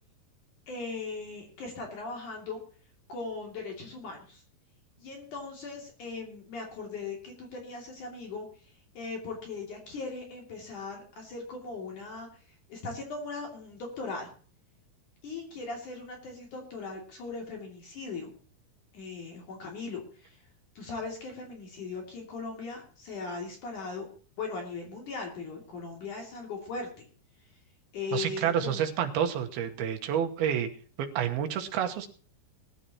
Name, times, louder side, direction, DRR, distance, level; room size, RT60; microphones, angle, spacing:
voice 1, 0.7-2.6 3.1-4.4 5.0-8.5 9.0-12.3 12.7-14.3 15.2-18.3 18.9-20.4 20.8-24.1 24.4-26.9 27.9-28.9, left 4 dB, 55° left, 1 dB, 4.0 m, -39 dB
voice 2, 28.1-30.7 31.0-32.1, right 9 dB, 80° right, 5 dB, 3.1 m, -29 dB
21.0 x 11.5 x 3.0 m, 0.42 s
omnidirectional pair, 4.6 m